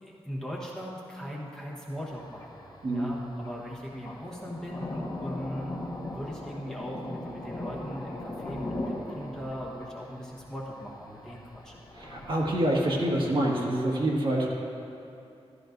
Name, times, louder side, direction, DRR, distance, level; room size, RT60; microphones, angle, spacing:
voice 1, 0.0-2.7 2.9-5.8 6.1-11.7, equal, 5° left, -5 dB, 1.2 m, -39 dB
Thunder, 1.9-13.2, left 1 dB, 35° left, 1.3 m, -40 dB
voice 2, 11.9-14.5, right 1 dB, 50° right, -3 dB, 1.7 m, -26 dB
13.5 x 13.5 x 2.6 m, 2.7 s
wide cardioid pair, 165°, 11 cm